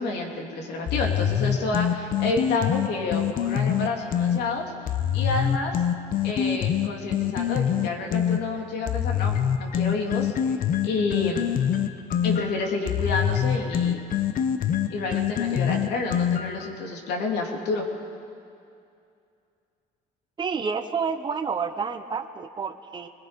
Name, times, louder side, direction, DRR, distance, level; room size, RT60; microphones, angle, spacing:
voice 1, 0.0-4.7 5.1-5.8 6.2-10.6 10.8-11.5 12.2-14.0 14.9-17.9, left 3 dB, 75° left, 1 dB, 3.2 m, -29 dB
sound 1, 0.9-4.4 4.9-8.4 8.9-16.7, left 9 dB, 55° left, 1.0 m, -25 dB
voice 2, 20.4-23.1, right 5 dB, 25° right, 6 dB, 1.0 m, -29 dB
25.0 x 20.5 x 5.3 m, 2.5 s
cardioid pair, 110°, 17 cm